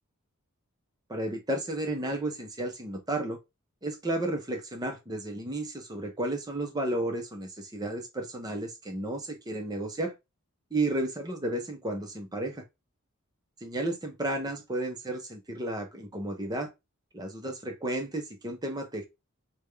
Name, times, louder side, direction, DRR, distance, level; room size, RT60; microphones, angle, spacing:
voice 1, 1.1-3.4 3.8-10.1 10.7-12.6 13.6-16.7 17.1-19.1, right 1 dB, 20° right, 0.7 m, -33 dB
3.4 x 2.3 x 3.2 m
head